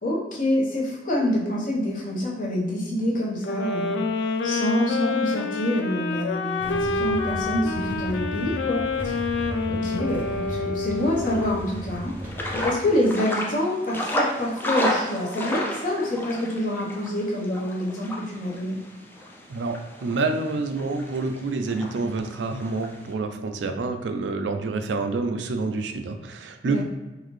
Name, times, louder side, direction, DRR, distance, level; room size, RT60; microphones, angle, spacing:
voice 1, 0.0-4.0 4.4-9.1 9.7-12.1 12.5-18.8 26.6-26.8, left 1 dB, 50° left, -3 dB, 0.9 m, -26 dB
sound 1, 3.4-11.6, left 4 dB, 85° left, 0.3 m, -28 dB
Motorcycle / Engine starting / Idling, 6.6-12.7, equal, 10° right, 0.8 m, -35 dB
sound 2, 10.9-23.1, left 1 dB, 10° left, 0.4 m, -32 dB
voice 2, 19.5-26.8, right 3 dB, 85° right, 6 dB, 0.4 m, -28 dB
3.9 x 2.6 x 3.1 m, 1.1 s
head